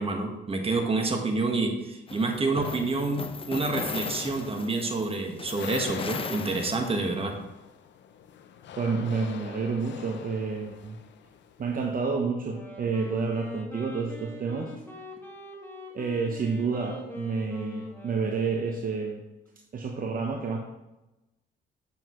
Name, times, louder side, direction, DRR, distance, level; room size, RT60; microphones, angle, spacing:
voice 1, 0.0-7.4, right 3 dB, 30° right, 3 dB, 1.5 m, -28 dB
sound 1, 2.1-7.2, left 4 dB, 25° left, 0.7 m, -37 dB
sound 2, 5.5-12.0, left 8 dB, 70° left, 0.7 m, -43 dB
voice 2, 8.7-11.0 11.6-14.7 15.9-19.2 19.7-20.6, right 4 dB, 45° right, 1 dB, 1.0 m, -29 dB
Wind instrument woodwind instrument, 12.4-18.9, left 1 dB, 10° left, 1.9 m, -42 dB
8.0 x 6.9 x 3.1 m, 0.99 s
cardioid pair, 90°, 20 cm